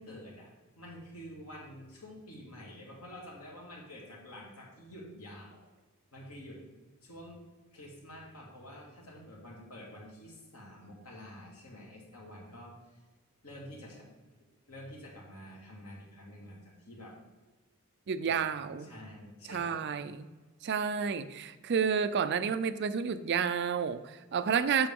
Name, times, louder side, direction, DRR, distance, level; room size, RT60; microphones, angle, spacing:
voice 1, 0.0-5.6 6.1-6.6 7.0-7.4 7.7-13.0 13.4-14.1 14.7-17.2 18.2-19.8, equal, 85° left, -2 dB, 2.2 m, -48 dB
voice 2, 18.1-18.9 19.5-20.3 20.6-24.9, right 6 dB, 50° right, 12 dB, 0.4 m, -30 dB
7.8 x 6.0 x 3.6 m, 1.3 s
head